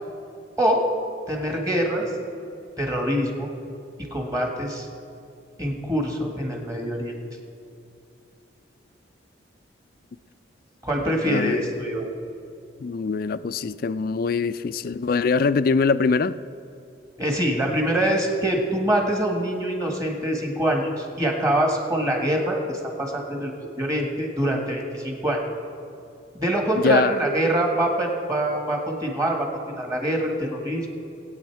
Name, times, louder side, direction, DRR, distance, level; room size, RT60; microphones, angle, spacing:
voice 1, 1.3-2.1 2.8-3.5 4.0-4.9 5.6-7.1 10.8-12.1 17.2-25.4 26.4-30.9, right 1 dB, 20° right, 1 dB, 1.7 m, -24 dB
voice 2, 11.1-11.6 12.8-16.4 26.8-27.2, left 4 dB, 45° left, 15 dB, 0.3 m, -23 dB
20.0 x 8.8 x 4.7 m, 2.6 s
head